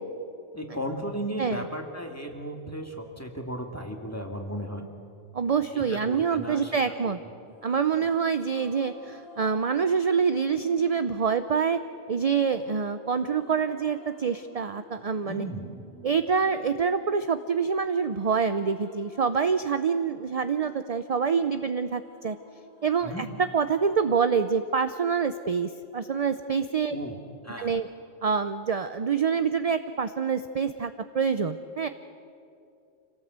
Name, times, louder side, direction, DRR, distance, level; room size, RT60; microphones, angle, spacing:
voice 1, 0.5-4.8 5.7-6.7 7.9-8.1 15.2-15.7 23.0-23.2 26.9-27.2 27.4-27.7, equal, 10° left, 3 dB, 2.1 m, -35 dB
voice 2, 5.3-7.2 7.6-11.8 12.1-15.4 16.0-22.4 22.8-27.0 27.6-27.9 28.2-31.9, right 6 dB, 40° right, 10 dB, 0.5 m, -26 dB
sound 1, 7.5-24.5, left 1 dB, 50° left, 6.8 m, -52 dB
26.0 x 18.0 x 8.1 m, 2.6 s
omnidirectional pair, 1.3 m